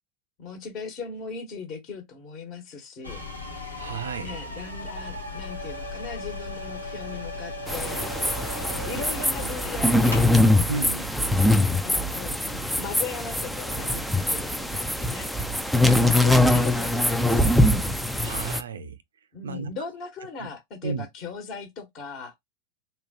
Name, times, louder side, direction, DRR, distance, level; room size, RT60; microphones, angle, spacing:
voice 1, 0.4-3.2 4.2-8.4 8.8-10.7 11.4-17.7 19.3-22.4, left 4 dB, 35° left, 1.3 m, -39 dB
sound 1, 3.0-10.3, left 2 dB, 85° left, 0.9 m, -36 dB
voice 2, 3.8-4.4 10.7-11.1 15.8-16.0 18.2-19.0 19.4-19.7 20.4-20.5 20.8-21.0, right 5 dB, 65° right, 0.6 m, -33 dB
sound 2, 7.7-18.6, left 1 dB, ahead, 0.4 m, -23 dB
3.8 x 2.2 x 2.8 m
figure-of-eight pair, 90°, 0 cm